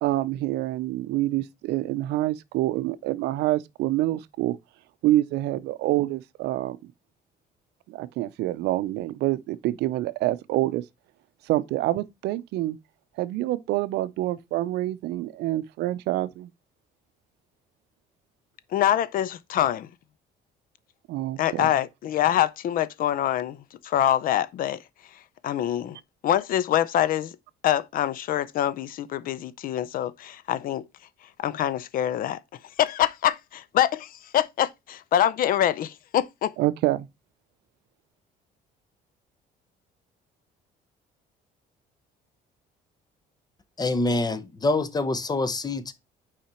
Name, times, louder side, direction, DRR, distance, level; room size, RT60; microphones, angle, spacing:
voice 1, 0.0-4.6 5.0-6.8 7.9-10.8 11.5-12.8 13.2-16.5 21.1-21.7 36.6-37.1, right 16 dB, 80° right, 0.5 m, -26 dB
voice 2, 18.7-19.9 21.4-23.6 23.8-24.8 25.4-26.0 26.2-27.3 27.6-30.8 31.4-32.4 32.8-36.5, left 11 dB, 55° left, 0.5 m, -25 dB
voice 3, 43.8-45.9, left 2 dB, 25° left, 0.8 m, -26 dB
5.7 x 4.9 x 4.3 m
cardioid pair, 110°, 17 cm